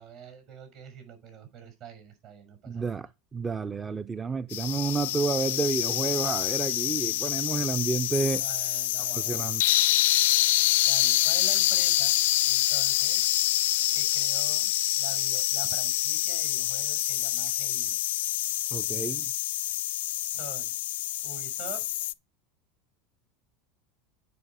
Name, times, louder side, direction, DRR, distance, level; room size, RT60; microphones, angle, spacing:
voice 1, 0.0-3.1 8.4-9.6 10.8-13.3 13.9-14.7 15.0-18.0 20.3-20.8 21.2-21.9, right 7 dB, 60° right, 6.0 m, -46 dB
voice 2, 2.7-3.1 3.3-8.4 9.1-9.6 18.7-19.2, right 4 dB, 20° right, 0.4 m, -30 dB
sound 1, 4.5-22.1, left 15 dB, 80° left, 0.4 m, -26 dB
9.5 x 5.4 x 4.9 m
hypercardioid pair, 100°, 0 cm